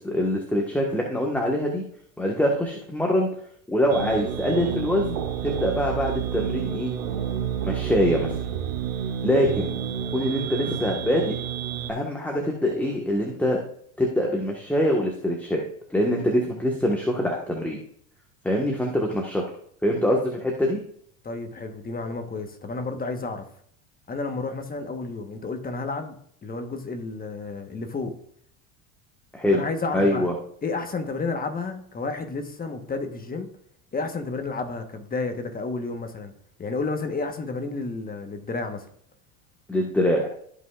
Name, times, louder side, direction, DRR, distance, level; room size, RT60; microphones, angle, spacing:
voice 1, 0.0-1.8 2.2-3.3 3.7-6.9 7.6-8.4 9.2-9.7 10.1-11.3 11.9-13.6 14.0-15.6 15.9-17.8 18.4-19.4 19.8-20.8 29.3-29.6 29.9-30.3 39.7-40.3, equal, 5° left, 1.3 m, -24 dB
sound 1, 3.9-11.9, right 9 dB, 75° right, 1.5 m, -30 dB
voice 2, 21.2-23.4 24.1-26.1 26.4-28.2 29.5-30.3 30.6-33.5 33.9-36.3 36.6-38.9, left 3 dB, 20° left, 1.2 m, -31 dB
15.0 x 5.6 x 2.4 m
supercardioid pair, 105°, 41 cm